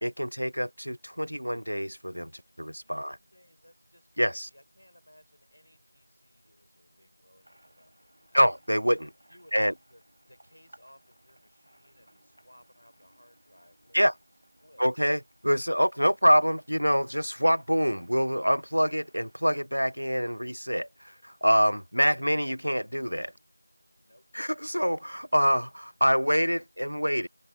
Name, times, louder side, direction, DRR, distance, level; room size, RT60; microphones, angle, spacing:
voice 1, 0.0-2.3 2.6-3.2 4.2-4.5 8.3-9.1 9.5-9.7 13.9-14.1 14.8-23.3 24.3-27.3, equal, 85° right, 0.5 m, -26 dB
voice 2, 2.5-8.4 9.3-10.0 10.3-14.0 14.6-14.8 23.9-24.2, equal, 40° left, 5.7 m, -60 dB
sound 1, 7.4-19.4, right 1 dB, 20° right, 1.5 m, -60 dB
figure-of-eight pair, 180°, 0 cm